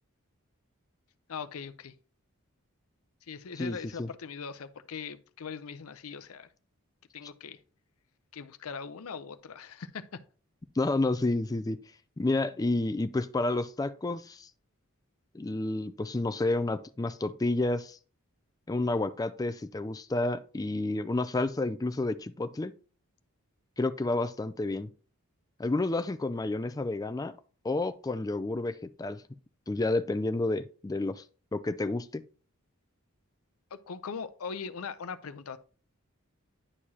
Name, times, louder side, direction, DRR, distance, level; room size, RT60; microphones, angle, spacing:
voice 1, 1.3-1.9 3.2-6.5 7.1-7.6 8.3-10.2 33.7-35.6, left 5 dB, 80° left, 0.6 m, -40 dB
voice 2, 3.6-4.1 10.8-11.8 12.2-14.5 15.3-18.0 18.7-22.7 23.8-24.9 25.6-27.3 27.6-29.2 29.7-31.2 31.5-32.2, left 2 dB, 15° left, 0.3 m, -30 dB
9.9 x 4.7 x 2.8 m
head